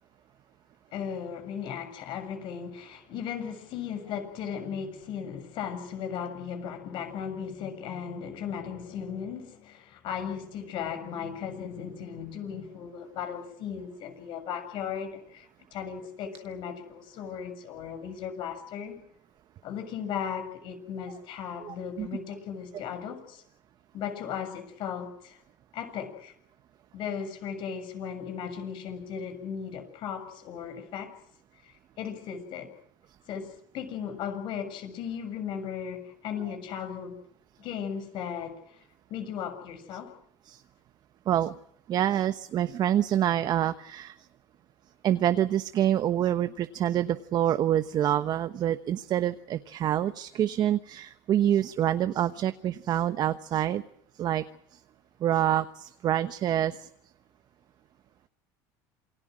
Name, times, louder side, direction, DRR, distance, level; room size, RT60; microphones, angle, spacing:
voice 1, 0.9-19.0 19.6-23.4 23.9-25.4 25.7-26.3 26.9-31.1 31.6-31.7 32.0-32.7 33.3-37.2 37.6-38.8 39.1-40.1, left 7 dB, 60° left, 9 dB, 6.9 m, -36 dB
voice 2, 21.6-22.1 40.5-40.6 41.3-41.6 41.9-44.2 45.0-53.9 54.2-54.5 54.7-54.8 55.2-56.9, right 11 dB, 50° right, 11 dB, 1.1 m, -26 dB
28.0 x 22.5 x 6.3 m, 0.73 s
supercardioid pair, 95°, 9 cm